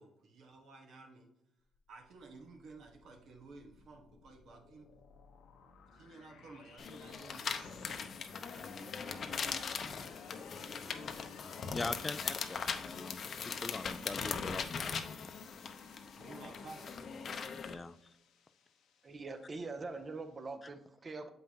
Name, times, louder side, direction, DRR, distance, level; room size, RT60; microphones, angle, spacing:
voice 1, 0.0-1.3 1.9-4.9 5.9-8.1 8.5-9.4 16.1-17.2, right 3 dB, 70° right, 3 dB, 1.2 m, -54 dB
sound 1, 1.7-20.5, left 7 dB, 85° left, 0.9 m, -58 dB
sound 2, 6.8-17.7, left 6 dB, 50° left, 0.7 m, -40 dB
voice 2, 11.7-15.2 17.6-18.0, left 3 dB, 25° left, 13 dB, 0.4 m, -42 dB
voice 3, 19.0-21.3, right 3 dB, 35° right, 9 dB, 0.8 m, -43 dB
7.5 x 5.5 x 2.8 m, 0.86 s
cardioid pair, 90°, 0 cm